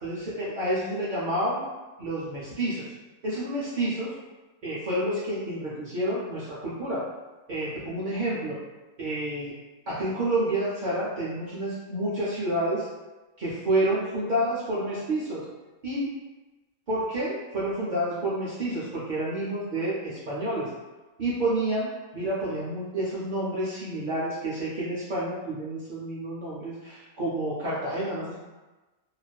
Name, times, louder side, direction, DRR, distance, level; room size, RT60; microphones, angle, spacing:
voice 1, 0.0-1.6 2.0-2.8 3.2-4.1 4.6-7.0 7.5-8.6 9.0-9.5 9.9-12.9 13.4-15.4 15.8-16.1 16.9-20.7 21.2-28.4, right 1 dB, 75° right, -8 dB, 0.4 m, -29 dB
2.4 x 2.3 x 2.2 m, 1.2 s
omnidirectional pair, 1.4 m